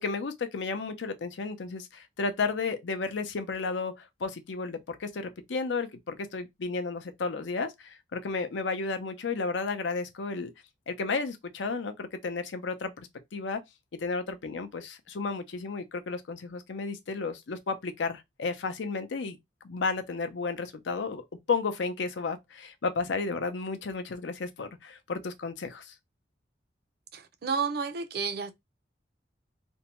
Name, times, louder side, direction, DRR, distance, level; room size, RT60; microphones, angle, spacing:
voice 1, 0.0-10.5 10.9-13.6 14.0-19.4 19.6-21.2 21.5-25.9, left 4 dB, 85° left, 0.5 m, -33 dB
voice 2, 27.1-28.5, right 5 dB, 60° right, 0.4 m, -31 dB
2.6 x 2.1 x 2.9 m
head